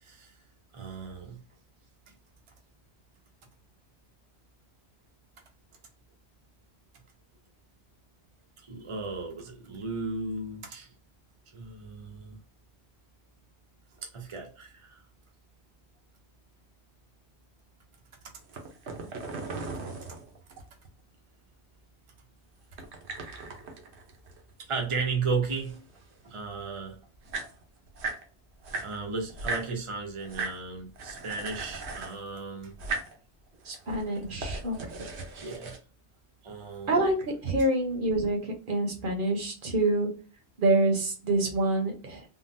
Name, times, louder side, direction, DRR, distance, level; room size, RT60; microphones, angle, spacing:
voice 1, 0.0-0.3 0.7-1.4 8.6-10.9 11.5-12.4 14.0-15.0 24.6-25.8 26.2-27.0 28.8-32.8 35.4-35.8 36.4-37.0, right 4 dB, 35° right, 0.6 m, -35 dB
sound 1, 18.4-20.9 22.7-24.8 25.1-26.3 26.9-27.0 27.1-28.2 28.6-29.7 30.2-30.6 31.0-32.2 32.7-33.2 33.7-35.8, right 3 dB, 75° right, 1.0 m, -37 dB
voice 2, 33.6-34.9 36.9-40.1 40.6-42.2, right 2 dB, 50° right, 0.9 m, -27 dB
3.7 x 2.1 x 2.5 m
omnidirectional pair, 1.1 m